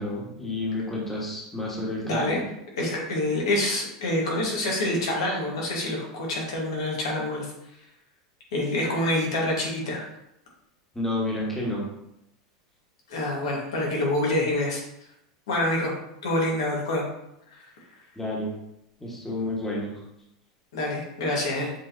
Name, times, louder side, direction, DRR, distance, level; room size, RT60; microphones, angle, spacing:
voice 1, 0.0-2.2 10.9-11.8 18.2-18.5 19.0-19.9, left 1 dB, 10° left, -4 dB, 1.5 m, -30 dB
voice 2, 2.0-2.4 2.7-7.5 8.5-10.0 13.1-14.8 15.5-15.9 16.2-17.1 17.5-17.7 20.7-21.7, left 1 dB, 85° left, -3 dB, 1.5 m, -26 dB
7.1 x 2.6 x 2.7 m, 0.82 s
hypercardioid pair, 110°, 3 cm